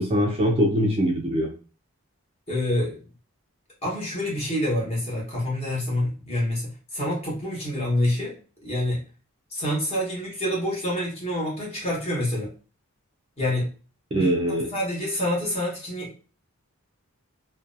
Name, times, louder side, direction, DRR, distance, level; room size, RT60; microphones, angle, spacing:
voice 1, 0.0-1.5 14.1-14.7, equal, 25° right, 1 dB, 0.4 m, -22 dB
voice 2, 2.5-3.0 3.8-8.3 8.6-9.0 9.5-12.5 13.4-13.7 14.1-16.1, left 1 dB, 25° left, -5 dB, 1.0 m, -27 dB
2.5 x 2.2 x 2.5 m, 0.38 s
head